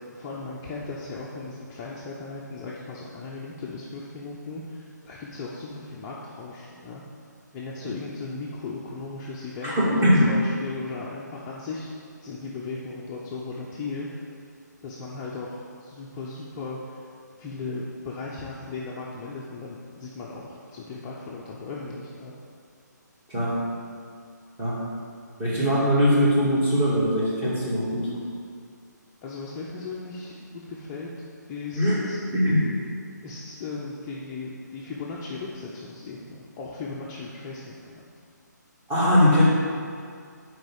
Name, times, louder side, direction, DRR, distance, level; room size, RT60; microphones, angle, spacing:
voice 1, 0.0-7.0 7.5-11.9 12.2-14.3 14.8-17.1 17.4-22.3 29.2-31.1 31.5-32.2 33.2-38.0, left 3 dB, 20° left, -5 dB, 0.7 m, -37 dB
voice 2, 9.6-10.3 23.3-23.6 24.6-24.8 25.4-28.1 31.7-31.9 32.3-32.7 38.9-39.4, equal, 15° right, -8 dB, 2.3 m, -21 dB
7.9 x 4.7 x 7.1 m, 2.2 s
figure-of-eight pair, 145°, 10 cm